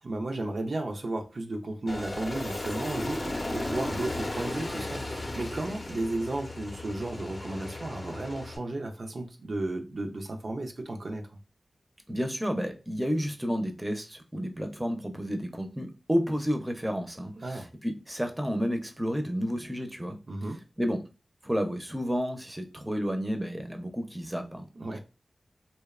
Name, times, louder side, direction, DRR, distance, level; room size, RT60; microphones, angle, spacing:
voice 1, 0.0-11.3 17.4-17.7 20.3-20.6 24.8-25.0, right 2 dB, 70° right, 0.4 m, -34 dB
Aircraft, 1.9-8.6, left 1 dB, 45° left, 0.5 m, -35 dB
voice 2, 12.1-20.2 20.8-21.0 21.4-24.7 24.9-25.0, equal, 15° right, 0.5 m, -31 dB
2.7 x 2.0 x 2.3 m
cardioid pair, 40°, 0 cm